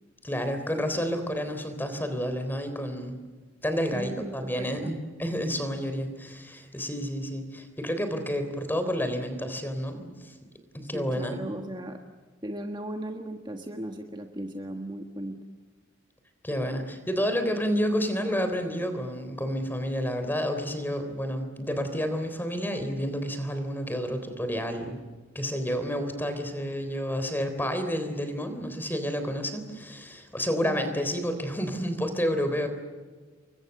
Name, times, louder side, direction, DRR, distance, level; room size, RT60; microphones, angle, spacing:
voice 1, 0.2-3.2 3.6-10.3 10.7-11.4 16.4-25.0 25.4-32.7, equal, 10° left, 8 dB, 3.6 m, -30 dB
voice 2, 3.9-5.0 10.9-12.0 12.4-15.4 30.6-30.8, right 1 dB, 25° right, 4 dB, 1.5 m, -37 dB
29.5 x 23.0 x 6.7 m, 1.4 s
head